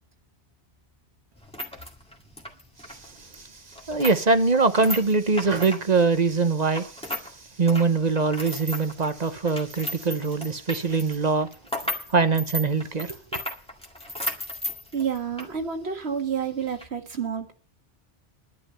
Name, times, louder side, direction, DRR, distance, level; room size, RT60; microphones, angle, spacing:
sound 1, 1.4-7.3 7.6-15.5 15.8-15.9 16.6-16.8, left 1 dB, 5° left, 1.9 m, -35 dB
voice 1, 2.9-3.5 3.9-7.2 7.6-11.5 12.1-13.4, right 4 dB, 45° right, 1.0 m, -23 dB
voice 2, 14.9-17.5, right 7 dB, 85° right, 1.9 m, -29 dB
11.5 x 10.0 x 5.6 m
omnidirectional pair, 1.1 m